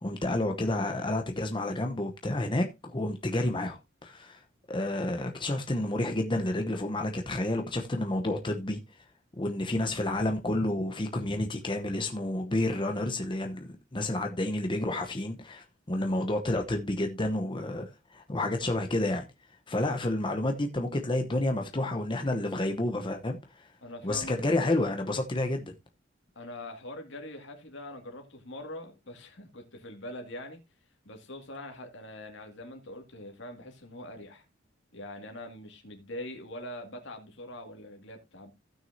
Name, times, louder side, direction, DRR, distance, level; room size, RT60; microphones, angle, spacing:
voice 1, 0.0-4.4 4.7-8.8 9.4-13.6 13.9-19.2 19.7-23.7 24.0-25.7, left 1 dB, 25° left, 0.9 m, -30 dB
voice 2, 23.8-24.3 26.4-30.6 31.0-34.4 34.9-38.5, left 1 dB, 65° left, 2.2 m, -43 dB
16.0 x 6.2 x 2.7 m
head